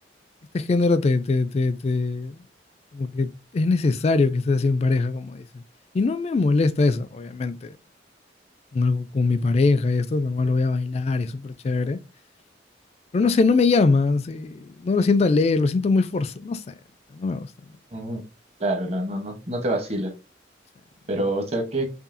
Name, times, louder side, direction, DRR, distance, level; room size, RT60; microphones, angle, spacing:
voice 1, 0.5-2.4 2.9-5.4 5.9-7.7 8.7-12.0 13.1-16.7 17.1-17.5, left 3 dB, 35° left, 0.3 m, -22 dB
voice 2, 17.9-18.2 18.6-20.1 21.1-21.9, right 1 dB, 35° right, 0.9 m, -26 dB
5.4 x 2.3 x 2.6 m
head